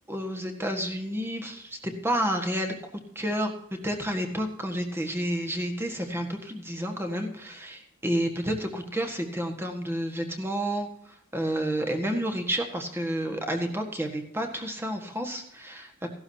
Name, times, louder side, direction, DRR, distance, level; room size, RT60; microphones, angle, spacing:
voice 1, 0.1-2.7 3.1-3.5 3.8-10.9 11.3-16.1, equal, 10° right, 3 dB, 1.6 m, -30 dB
16.0 x 12.0 x 2.9 m, 0.74 s
head